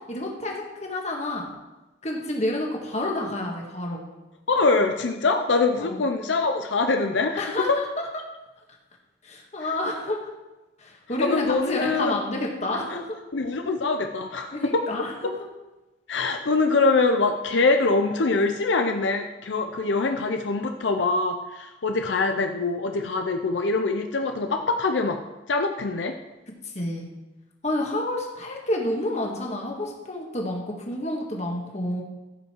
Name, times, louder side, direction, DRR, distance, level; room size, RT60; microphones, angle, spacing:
voice 1, 0.1-1.5 2.0-4.1 5.8-6.0 7.4-8.0 9.2-10.2 10.8-13.2 14.5-15.3 26.6-27.1 27.6-32.0, left 1 dB, 40° left, 0 dB, 1.7 m, -29 dB
voice 2, 4.5-7.8 11.2-12.2 13.3-14.8 16.1-25.2 25.5-26.1, left 3 dB, 85° left, 5 dB, 0.6 m, -24 dB
15.5 x 5.5 x 4.5 m, 1.1 s
head